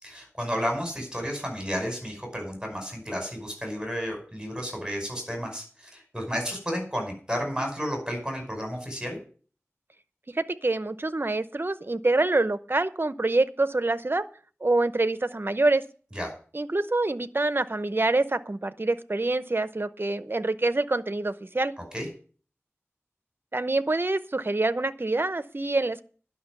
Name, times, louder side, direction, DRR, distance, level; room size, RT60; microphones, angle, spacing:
voice 1, 0.0-9.2 16.2-16.3 21.9-22.1, equal, 15° right, 2 dB, 5.3 m, -32 dB
voice 2, 10.3-14.2 14.6-15.8 16.5-21.7 23.5-26.0, right 2 dB, 45° right, 13 dB, 0.8 m, -26 dB
11.0 x 6.0 x 9.1 m, 0.42 s
wide cardioid pair, 50°, 5 cm